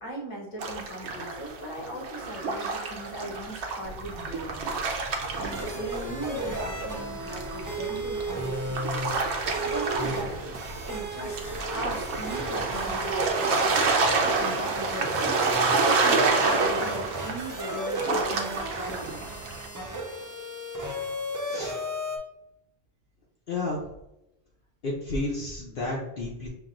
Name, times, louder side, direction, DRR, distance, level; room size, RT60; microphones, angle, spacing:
voice 1, 0.0-4.7 5.3-9.1 9.6-10.4 10.9-11.4 11.7-13.9 14.3-15.4 15.8-19.3, equal, 30° left, -2 dB, 1.0 m, -38 dB
sound 1, 0.6-6.3 6.6-19.7, right 3 dB, 85° right, 1.0 m, -28 dB
sound 2, 3.8-13.3, equal, 70° right, 1.3 m, -43 dB
sound 3, 5.5-22.2, right 2 dB, 25° right, 0.4 m, -34 dB
voice 2, 21.4-21.8 23.5-23.9 24.8-26.5, left 2 dB, 55° left, -3 dB, 0.9 m, -31 dB
5.9 x 2.6 x 2.5 m, 0.86 s
omnidirectional pair, 1.1 m